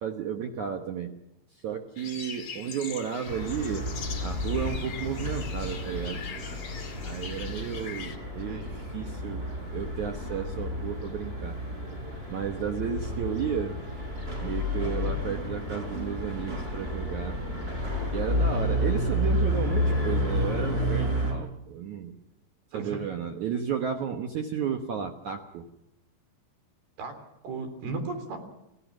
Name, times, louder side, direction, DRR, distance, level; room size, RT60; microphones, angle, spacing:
voice 1, 0.0-1.1 1.6-3.9 4.2-6.2 7.0-9.4 9.7-11.5 12.3-13.8 14.4-17.4 18.1-22.1 22.7-25.7, right 8 dB, 85° right, 5 dB, 1.6 m, -33 dB
sound 1, 2.0-8.2, left 6 dB, 40° left, 2.0 m, -42 dB
sound 2, 3.2-21.3, left 1 dB, 10° right, 5.9 m, -31 dB
voice 2, 13.0-13.3 22.7-23.0 27.0-27.1 27.4-28.4, right 3 dB, 55° right, 8 dB, 5.2 m, -35 dB
30.0 x 16.5 x 6.2 m, 0.88 s
omnidirectional pair, 5.4 m